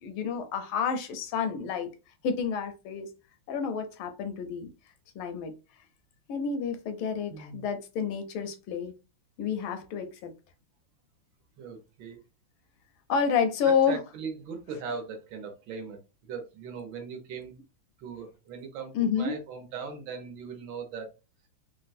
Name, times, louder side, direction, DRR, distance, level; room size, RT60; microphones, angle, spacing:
voice 1, 0.0-1.9 2.2-3.1 3.5-4.7 5.2-5.5 6.3-8.9 9.4-10.3 13.1-14.0 18.9-19.4, left 6 dB, 80° left, 1.4 m, -29 dB
voice 2, 7.3-7.7 11.6-12.2 13.6-17.5 18.0-21.1, right 5 dB, 70° right, 1.5 m, -39 dB
3.9 x 2.2 x 2.5 m
omnidirectional pair, 2.4 m